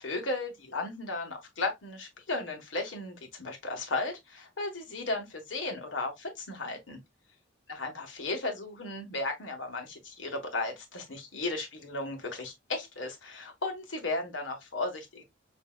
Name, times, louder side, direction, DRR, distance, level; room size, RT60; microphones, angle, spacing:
voice 1, 0.0-7.0 7.7-15.2, left 2 dB, 85° left, 1.3 m, -35 dB
5.6 x 2.7 x 2.3 m
head